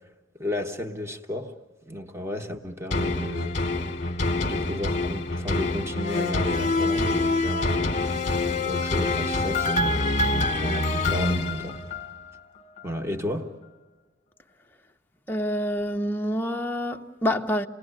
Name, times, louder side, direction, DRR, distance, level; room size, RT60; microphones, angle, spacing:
voice 1, 0.3-1.5 1.8-3.6 4.4-8.0 8.6-11.8 12.8-13.5, left 1 dB, 15° right, 1.4 m, -33 dB
sound 1, 2.9-12.3 12.8-12.9, left 2 dB, 35° left, 1.4 m, -26 dB
voice 2, 15.3-17.7, equal, 10° left, 0.9 m, -27 dB
29.0 x 20.0 x 9.2 m
head